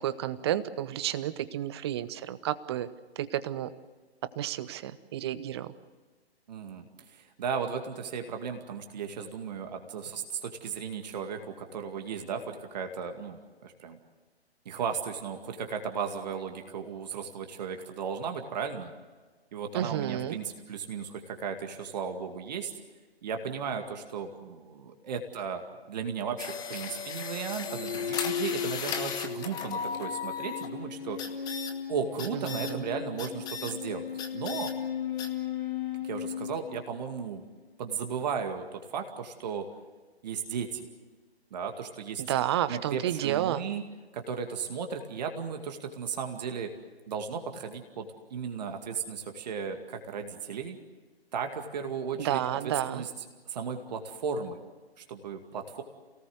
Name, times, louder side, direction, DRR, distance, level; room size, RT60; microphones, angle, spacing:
voice 1, 0.0-2.9 3.2-3.7 4.4-5.7 19.7-20.4 32.5-32.8 42.2-43.6 52.2-53.0, right 12 dB, 25° right, 15 dB, 0.8 m, -31 dB
voice 2, 6.5-14.0 14.7-18.9 19.5-22.7 23.2-25.6 25.9-31.2 31.9-34.7 36.0-37.4 37.8-39.6 40.2-40.9 41.5-42.2 42.7-43.8 44.1-46.7 47.1-50.8 51.3-52.4 52.9-53.1 53.5-54.6 55.0-55.8, right 6 dB, 40° right, 4 dB, 2.2 m, -35 dB
sound 1, 26.4-30.7 31.2-31.7 32.2-32.7 33.2-33.7 34.2-34.7 35.2-35.3, left 6 dB, 10° left, 1.2 m, -36 dB
sound 2, 27.6-37.3, left 8 dB, 50° left, 2.8 m, -36 dB
28.5 x 18.5 x 7.9 m, 1.3 s
figure-of-eight pair, 135°, 32 cm